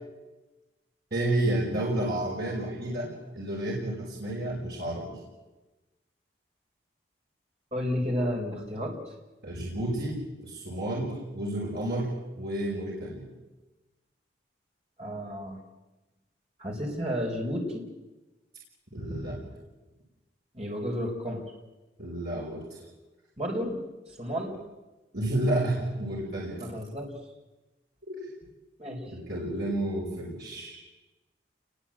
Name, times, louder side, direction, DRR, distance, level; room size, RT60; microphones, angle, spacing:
voice 1, 1.1-5.2 9.4-13.3 18.9-19.4 22.0-22.8 25.1-26.6 28.1-28.2 29.1-30.8, right 1 dB, 60° right, -3 dB, 5.8 m, -31 dB
voice 2, 7.7-9.1 15.0-15.6 16.6-17.9 20.5-21.4 23.4-23.8 24.1-24.6 26.6-27.2 28.8-29.1, equal, 35° right, 0 dB, 4.8 m, -32 dB
28.5 x 21.0 x 9.0 m, 1.1 s
head